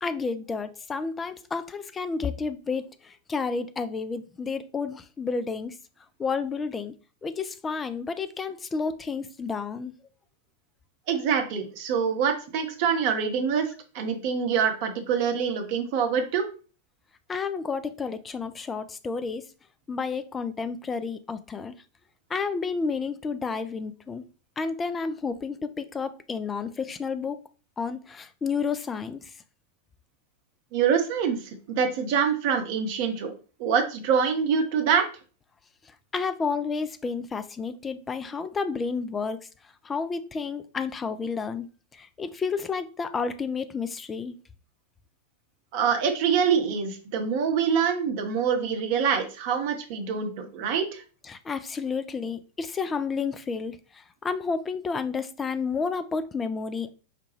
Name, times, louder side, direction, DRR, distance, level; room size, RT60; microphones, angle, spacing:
voice 1, 0.0-5.8 6.2-6.9 7.2-10.0 17.3-19.4 19.9-21.7 22.3-24.2 24.6-27.4 27.8-29.3 36.1-39.4 39.8-41.7 41.9-44.4 51.3-56.9, left 5 dB, 20° left, 0.4 m, -31 dB
voice 2, 11.1-13.7 13.9-16.4 30.7-33.3 33.6-35.1 45.7-51.0, right 7 dB, 45° right, 0.8 m, -25 dB
5.0 x 2.2 x 3.1 m
figure-of-eight pair, 90°, 0 cm